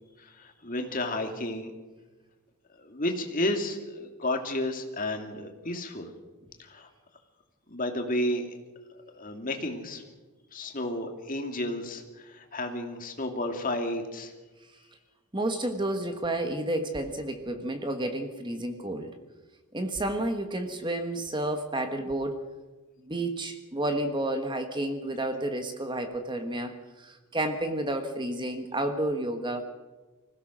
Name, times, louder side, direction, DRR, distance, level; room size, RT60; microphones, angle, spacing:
voice 1, 0.2-1.7 2.8-6.1 6.6-6.9 7.7-8.5 9.1-10.0 10.5-14.3, left 1 dB, 40° left, 4 dB, 2.6 m, -32 dB
voice 2, 15.3-19.1 19.7-22.4 23.0-29.6, right 1 dB, 20° right, 6 dB, 1.3 m, -31 dB
25.5 x 16.5 x 6.3 m, 1.2 s
head